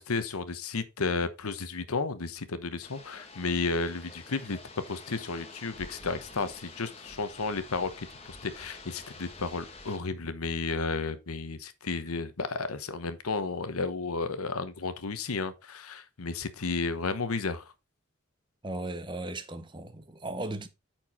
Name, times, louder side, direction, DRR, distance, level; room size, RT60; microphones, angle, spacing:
voice 1, 0.0-4.6 4.9-17.7, left 4 dB, 90° left, 0.9 m, -33 dB
sound 1, 2.8-10.0, left 3 dB, 25° left, 1.4 m, -48 dB
voice 2, 18.6-20.7, right 2 dB, 20° right, 0.7 m, -36 dB
8.9 x 4.5 x 4.2 m
head